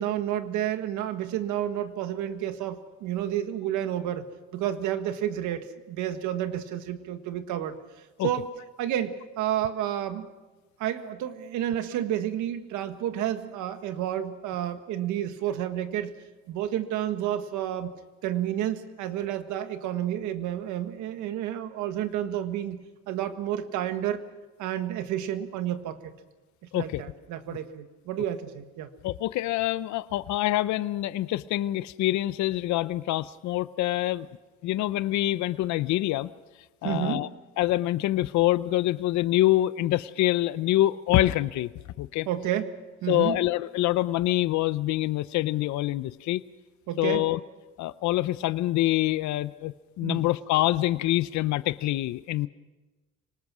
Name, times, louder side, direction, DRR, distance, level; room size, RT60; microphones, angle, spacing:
voice 1, 0.0-4.3 4.5-7.8 8.2-8.5 8.8-10.3 10.8-16.1 16.5-17.9 18.2-22.8 23.1-24.3 24.6-26.1 26.7-28.9 36.8-37.3 42.3-43.4 46.9-47.2 50.0-50.3, right 11 dB, 85° right, 9 dB, 1.6 m, -30 dB
voice 2, 26.7-27.0 29.0-34.3 34.6-36.3 36.8-37.3 37.6-41.7 42.0-42.3 43.1-46.4 47.0-47.4 47.8-52.5, left 15 dB, 75° left, 15 dB, 0.7 m, -25 dB
25.5 x 19.5 x 6.2 m, 1.2 s
cardioid pair, 100°, 29 cm